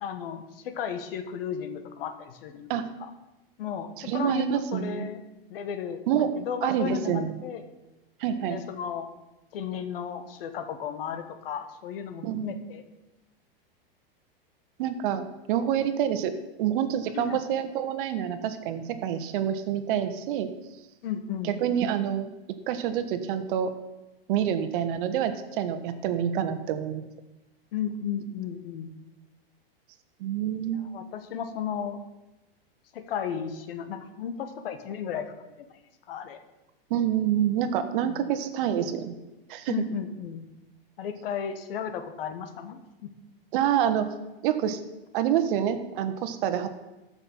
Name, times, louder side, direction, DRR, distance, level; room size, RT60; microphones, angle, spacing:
voice 1, 0.0-2.7 3.6-5.2 5.5-6.0 6.3-7.6 8.4-9.1 9.5-12.8 17.1-17.4 21.0-21.6 27.7-28.9 30.8-32.0 32.9-35.8 36.1-36.4 38.0-38.2 39.7-40.4 41.0-43.1, left 8 dB, 70° left, 9 dB, 1.5 m, -34 dB
voice 2, 4.0-5.1 6.1-6.3 6.6-7.4 8.2-8.6 12.2-12.6 14.8-16.3 16.6-20.5 21.4-22.3 22.7-23.7 24.3-27.1 30.2-30.8 36.9-39.1 39.5-39.7 43.5-44.1 44.4-44.8 45.1-46.7, right 9 dB, 60° right, 10 dB, 1.2 m, -27 dB
14.5 x 6.1 x 5.6 m, 1.0 s
hypercardioid pair, 130°, 29 cm